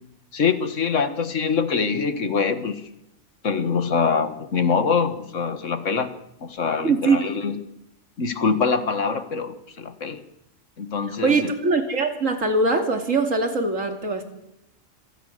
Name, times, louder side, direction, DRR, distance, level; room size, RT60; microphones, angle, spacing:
voice 1, 0.3-2.8 3.4-6.1 6.4-7.6 8.2-10.2 10.8-11.5, left 5 dB, 75° left, 11 dB, 1.8 m, -24 dB
voice 2, 6.8-7.2 11.2-14.2, right 3 dB, 85° right, 5 dB, 3.0 m, -22 dB
27.5 x 17.5 x 6.6 m, 0.82 s
omnidirectional pair, 1.3 m